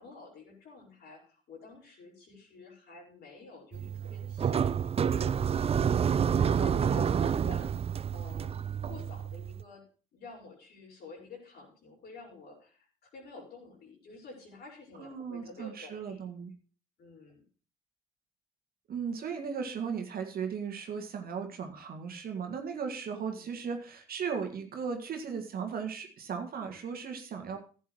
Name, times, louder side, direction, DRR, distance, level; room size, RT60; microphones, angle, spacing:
voice 1, 0.0-12.9 13.1-16.2 17.0-17.4 23.3-23.6, left 3 dB, 55° left, -2 dB, 5.0 m, -49 dB
sound 1, 3.7-9.6, right 7 dB, 30° right, 0.5 m, -29 dB
voice 2, 6.5-7.1 15.0-16.5 18.9-27.6, right 6 dB, 50° right, 4 dB, 1.8 m, -37 dB
15.5 x 8.3 x 3.1 m, 0.38 s
hypercardioid pair, 50°, 19 cm